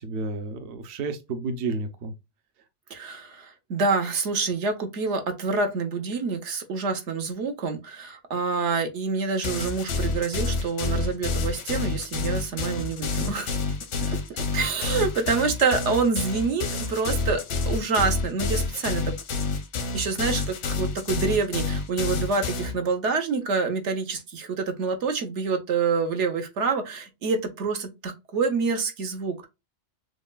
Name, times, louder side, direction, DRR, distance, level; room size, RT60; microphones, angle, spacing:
voice 1, 0.0-2.1, right 3 dB, 60° right, 0.8 m, -31 dB
voice 2, 2.9-13.6 14.1-14.2 14.5-19.0 19.9-29.5, right 4 dB, 80° right, 1.2 m, -27 dB
sound 1, 9.4-22.7, left 4 dB, 90° left, 1.1 m, -28 dB
6.3 x 2.2 x 2.2 m
omnidirectional pair, 1.2 m